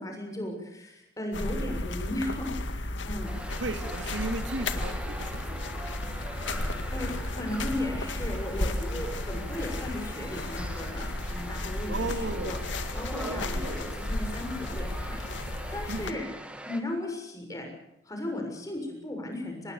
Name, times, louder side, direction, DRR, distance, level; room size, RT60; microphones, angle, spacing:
voice 1, 0.0-3.3 6.5-12.6 12.9-15.2 15.7-16.2 16.6-17.7 18.0-19.7, left 1 dB, 20° left, 2 dB, 6.8 m, -36 dB
sound 1, 1.3-16.1, left 1 dB, 85° left, 2.0 m, -34 dB
sound 2, 3.2-16.8, right 1 dB, 5° right, 1.9 m, -42 dB
voice 2, 3.6-5.7 8.9-9.1 11.9-12.6 13.1-13.8 15.9-16.2, right 2 dB, 90° right, 7 dB, 2.5 m, -35 dB
26.0 x 20.5 x 7.2 m, 0.86 s
head